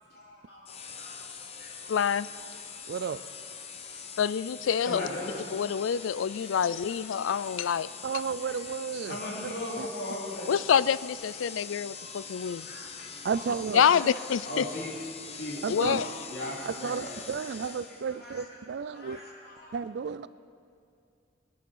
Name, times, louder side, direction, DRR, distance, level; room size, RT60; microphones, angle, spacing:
voice 1, 0.1-2.0 2.9-3.1 3.9-4.1 4.9-5.3 6.4-6.6 8.1-8.5 9.0-10.5 11.9-13.4 14.4-15.0 15.3-17.7 18.1-18.4 18.9-19.8, left 1 dB, 50° left, -5 dB, 3.1 m, -40 dB
sound 1, 0.6-18.2, left 6 dB, 30° left, 0.8 m, -43 dB
voice 2, 1.9-2.3 4.2-5.1 5.5-7.9 10.5-12.7 13.7-14.7 15.7-16.1, left 7 dB, 85° left, 17 dB, 0.4 m, -26 dB
voice 3, 2.9-3.2 8.0-9.2 9.8-9.9 13.2-13.9 15.6-16.1 16.7-19.2 19.7-20.3, right 6 dB, 60° right, 15 dB, 0.3 m, -32 dB
21.5 x 10.0 x 5.5 m, 2.3 s
head